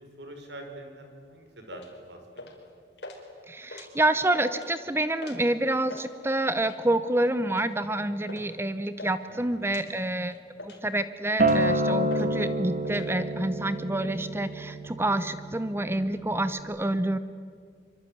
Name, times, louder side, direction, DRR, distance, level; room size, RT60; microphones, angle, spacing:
voice 1, 0.2-1.8 2.1-2.5 9.3-9.9, right 1 dB, 75° right, 4 dB, 5.7 m, -45 dB
sound 1, 1.7-1.9 2.4-2.7 3.0-3.2 3.6-4.2 4.5-4.7 5.2-5.4 5.7-6.1 6.6-6.9 7.5-7.7 8.3-8.5 8.7-9.2 9.7-9.9 10.3-10.9 11.4-11.7 12.1-12.3 12.5-13.1, left 2 dB, 70° left, 4.8 m, -43 dB
voice 2, 3.5-10.3 10.6-17.2, right 1 dB, 15° right, 12 dB, 0.8 m, -28 dB
Acoustic guitar, 11.4-16.6, right 1 dB, 50° right, 2.6 m, -28 dB
25.5 x 25.0 x 9.3 m, 2.2 s
head